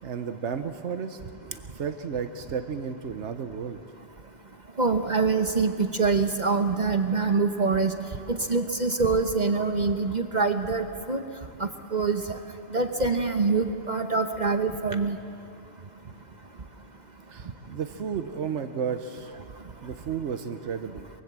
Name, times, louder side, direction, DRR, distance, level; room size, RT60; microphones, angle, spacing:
voice 1, 0.0-3.8 17.3-19.3 19.8-21.1, right 7 dB, 90° right, 8 dB, 1.2 m, -33 dB
voice 2, 4.8-7.9 8.3-11.2 11.6-12.2 12.7-15.2, right 4 dB, 45° right, 6 dB, 1.0 m, -25 dB
23.5 x 22.5 x 7.5 m, 2.5 s
omnidirectional pair, 1.2 m